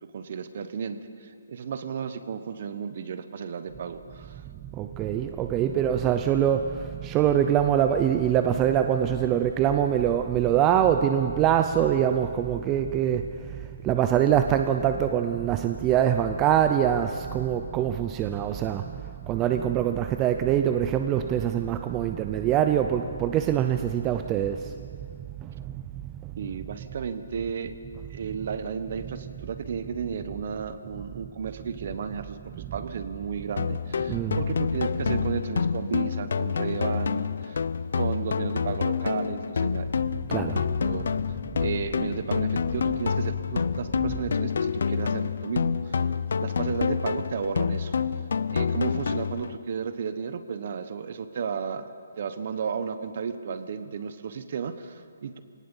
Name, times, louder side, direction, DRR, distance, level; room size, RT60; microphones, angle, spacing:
voice 1, 0.0-4.4 26.4-27.7 28.1-37.6 37.9-39.9 40.5-41.1 41.6-46.0 46.4-47.9 48.5-51.9 52.2-55.4, right 6 dB, 45° right, 11 dB, 1.2 m, -33 dB
voice 2, 4.4-24.8 25.4-26.3 32.5-32.7 34.1-34.4 35.1-35.2 40.3-40.6, right 10 dB, 15° right, 7 dB, 0.5 m, -24 dB
sound 1, 33.6-49.6, left 6 dB, 65° left, 0.6 m, -28 dB
22.0 x 18.5 x 7.2 m, 2.2 s
hypercardioid pair, 165°, 0 cm